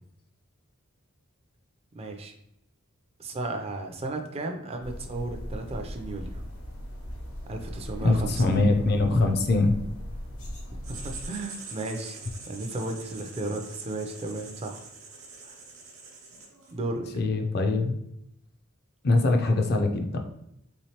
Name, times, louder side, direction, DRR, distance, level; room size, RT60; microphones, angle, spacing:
voice 1, 2.0-2.3 3.2-6.4 7.5-8.7 10.9-12.2 12.5-14.8 15.4-15.6 16.7-17.1, right 2 dB, 30° right, 4 dB, 0.4 m, -34 dB
sound 1, 4.8-11.3, equal, 75° left, 1.1 m, -38 dB
voice 2, 8.0-9.7 17.1-18.0 19.0-20.2, left 2 dB, 50° left, 4 dB, 0.5 m, -23 dB
Writing, 10.8-16.8, right 4 dB, 65° right, 0.9 m, -44 dB
3.5 x 3.1 x 2.8 m, 0.78 s
head